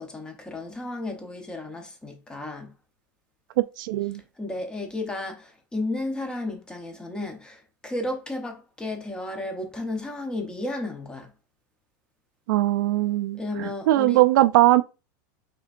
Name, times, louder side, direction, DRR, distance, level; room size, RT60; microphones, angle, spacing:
voice 1, 0.0-2.7 4.4-11.3 13.3-14.2, left 2 dB, 10° left, 0.7 m, -33 dB
voice 2, 3.8-4.2 12.5-14.8, right 16 dB, 70° right, 0.4 m, -20 dB
5.6 x 3.5 x 2.4 m
supercardioid pair, 165°, 11 cm